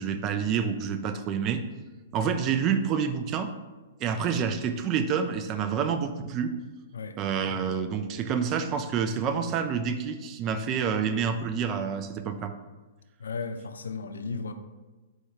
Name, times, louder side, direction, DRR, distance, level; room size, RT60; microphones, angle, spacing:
voice 1, 0.0-1.6 2.1-3.5 4.0-6.5 7.2-12.5, right 7 dB, 30° right, 9 dB, 0.3 m, -28 dB
voice 2, 13.2-14.5, left 4 dB, 75° left, 8 dB, 0.3 m, -35 dB
4.4 x 2.3 x 4.3 m, 1.2 s
figure-of-eight pair, 115°, 0 cm